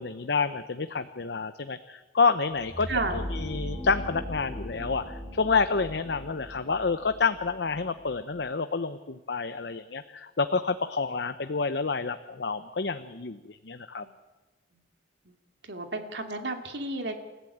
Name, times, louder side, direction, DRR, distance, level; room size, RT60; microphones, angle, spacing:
voice 1, 0.0-14.0, left 4 dB, 70° left, 10 dB, 0.8 m, -29 dB
sound 1, 2.5-8.4, equal, 40° right, 7.4 m, -39 dB
voice 2, 2.9-3.3 14.0-14.1 15.3-15.4 15.6-17.2, right 2 dB, 75° right, 5 dB, 2.6 m, -32 dB
28.5 x 14.5 x 8.7 m, 1.2 s
head